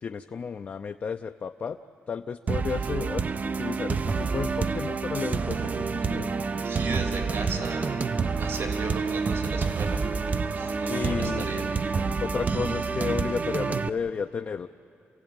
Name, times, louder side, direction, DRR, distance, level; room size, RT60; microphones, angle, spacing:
voice 1, 0.0-1.8 2.1-3.2 3.6-6.3 10.9-11.5 12.2-14.7, left 6 dB, 45° left, 6 dB, 0.5 m, -32 dB
sound 1, 2.5-13.9, right 5 dB, 35° right, 0.5 m, -28 dB
sound 2, 4.1-13.9, right 2 dB, 10° right, 0.8 m, -38 dB
voice 2, 6.6-8.0 8.3-10.0 10.3-11.7, right 3 dB, 75° right, 2 dB, 3.6 m, -36 dB
28.0 x 16.0 x 8.9 m, 2.8 s
wide cardioid pair, 130°, 4 cm